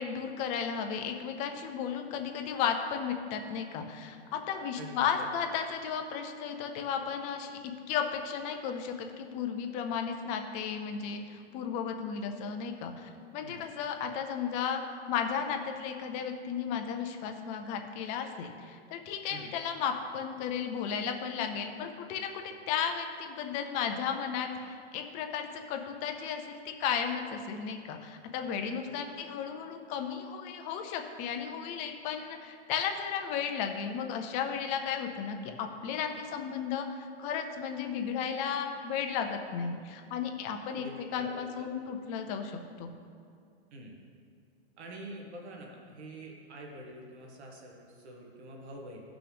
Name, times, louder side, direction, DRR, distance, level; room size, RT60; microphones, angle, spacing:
voice 1, 0.0-7.6 7.9-14.8 15.1-40.9 41.1-42.9, left 7 dB, 20° left, 5 dB, 0.5 m, -34 dB
voice 2, 4.7-5.3 13.4-13.6 19.3-19.5 28.8-28.9 40.7-41.7 43.7-43.9 44.8-49.0, right 1 dB, 80° right, 0 dB, 1.8 m, -46 dB
14.5 x 6.0 x 3.4 m, 2.3 s
supercardioid pair, 155°, 33 cm